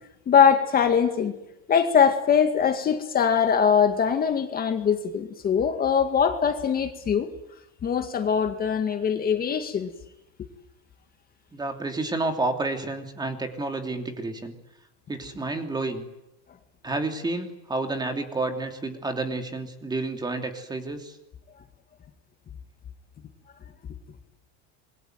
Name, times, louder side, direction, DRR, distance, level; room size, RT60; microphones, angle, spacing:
voice 1, 0.3-1.3 1.7-7.3 7.8-9.9, left 7 dB, 25° left, 6 dB, 2.1 m, -22 dB
voice 2, 11.5-14.5 15.1-16.1 16.8-21.2, right 2 dB, 10° right, 5 dB, 3.0 m, -30 dB
27.0 x 22.5 x 9.3 m, 0.89 s
cardioid pair, 150°, 33 cm